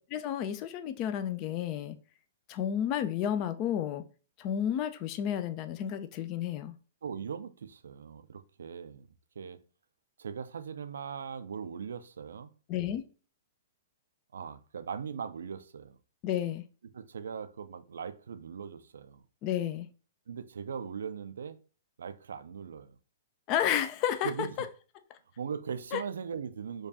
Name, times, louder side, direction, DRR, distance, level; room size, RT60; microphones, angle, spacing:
voice 1, 0.1-2.0 2.5-4.0 4.4-6.7 12.7-13.0 16.2-16.6 19.4-19.9 23.5-24.3 25.9-26.0, left 10 dB, 35° left, 0.3 m, -31 dB
voice 2, 7.0-9.1 9.4-9.6 10.2-12.5 14.3-16.0 16.9-19.2 20.3-21.6 22.0-23.0 24.2-24.7 25.4-26.9, right 7 dB, 70° right, 0.3 m, -39 dB
4.5 x 2.3 x 2.7 m
figure-of-eight pair, 115°, 0 cm